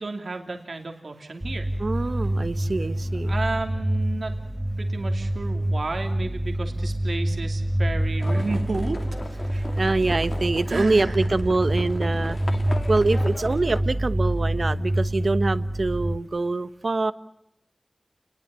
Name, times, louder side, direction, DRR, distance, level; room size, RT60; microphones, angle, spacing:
voice 1, 0.0-1.7 3.2-4.4 4.8-9.0 9.3-9.8 10.7-11.3, right 3 dB, 85° right, 4 dB, 2.8 m, -32 dB
sound 1, 1.4-16.2, right 1 dB, 15° right, 1.7 m, -26 dB
voice 2, 1.8-3.3 9.5-12.4 12.9-17.1, right 3 dB, 65° right, 14 dB, 1.1 m, -25 dB
Livestock farm animals working animals, 8.2-13.8, left 2 dB, 55° left, 2.4 m, -37 dB
29.5 x 20.5 x 6.9 m, 0.83 s
wide cardioid pair, 60°, 0 cm